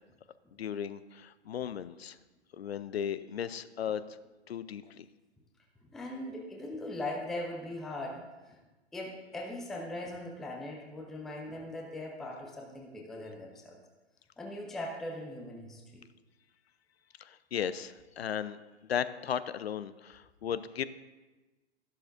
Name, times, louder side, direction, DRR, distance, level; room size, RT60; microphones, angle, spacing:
voice 1, 0.6-2.2 2.5-4.0 4.5-5.1 17.2-18.6 18.9-20.8, left 8 dB, 65° left, 15 dB, 0.6 m, -36 dB
voice 2, 5.8-8.6 8.9-13.8 14.4-16.0, left 1 dB, ahead, 1 dB, 0.4 m, -40 dB
12.5 x 11.5 x 2.6 m, 1.2 s
figure-of-eight pair, 115°, 34 cm